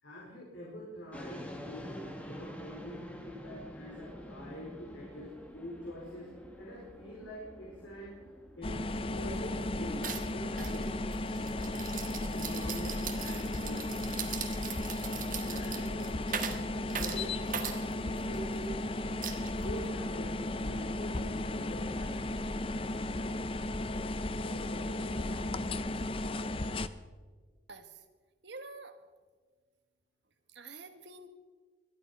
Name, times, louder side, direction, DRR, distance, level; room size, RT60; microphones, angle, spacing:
voice 1, 0.0-6.3 6.6-8.2 8.6-10.1 10.3-11.0 12.3-13.9 15.4-16.5 16.9-17.4 17.7-18.8 19.6-22.2 24.4-25.6, equal, 85° left, -4 dB, 4.4 m, -45 dB
sound 1, 1.1-17.4, equal, 5° left, 1.5 m, -50 dB
sound 2, 8.6-26.9, left 2 dB, 30° left, 0.5 m, -35 dB
sound 3, 8.9-9.0 9.3-9.6 10.0-18.6 19.2-19.9, right 8 dB, 45° right, 1.4 m, -40 dB
voice 2, 27.7-28.0 28.4-29.0 30.5-31.3, right 3 dB, 70° right, 8 dB, 1.5 m, -47 dB
21.0 x 12.5 x 5.4 m, 1.5 s
head